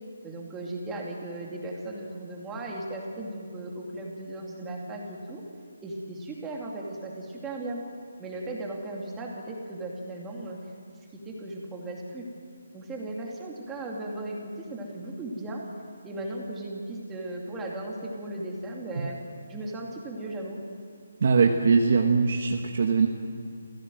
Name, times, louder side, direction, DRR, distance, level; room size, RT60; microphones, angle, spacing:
voice 1, 0.2-5.4 5.8-7.8 8.2-10.6 11.1-12.2 12.7-15.6 16.0-19.2 19.5-20.6, right 2 dB, 10° right, -2 dB, 2.6 m, -36 dB
voice 2, 21.2-23.1, right 5 dB, 45° right, 3 dB, 1.4 m, -21 dB
28.5 x 16.0 x 7.8 m, 2.3 s
hypercardioid pair, 175°, 0 cm